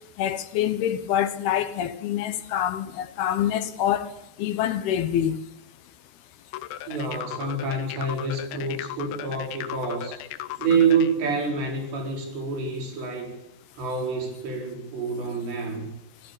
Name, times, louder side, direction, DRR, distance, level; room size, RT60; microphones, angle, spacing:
voice 1, 0.2-4.1 4.4-5.4, left 10 dB, 75° left, 2.8 m, -26 dB
sound 1, 6.5-11.1, left 13 dB, 90° left, 3.2 m, -37 dB
voice 2, 6.9-10.2 10.6-13.4 13.8-15.9, right 4 dB, 80° right, 6.9 m, -27 dB
26.0 x 16.0 x 7.2 m
omnidirectional pair, 4.9 m